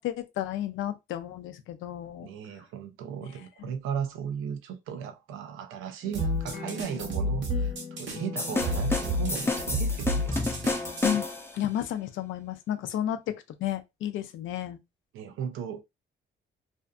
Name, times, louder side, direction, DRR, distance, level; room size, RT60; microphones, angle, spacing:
voice 1, 0.0-2.3 3.6-3.7 11.0-11.3 11.5-13.2 13.6-14.8, left 11 dB, 80° left, 0.5 m, -32 dB
voice 2, 2.2-7.7 8.0-10.4 15.1-15.8, right 8 dB, 85° right, 0.5 m, -36 dB
sound 1, 6.0-11.1, left 6 dB, 45° left, 0.9 m, -41 dB
sound 2, 6.1-11.1, equal, 65° right, 0.9 m, -30 dB
sound 3, 8.4-11.6, left 2 dB, 10° left, 0.6 m, -30 dB
2.5 x 2.4 x 2.2 m
cardioid pair, 90°, 20 cm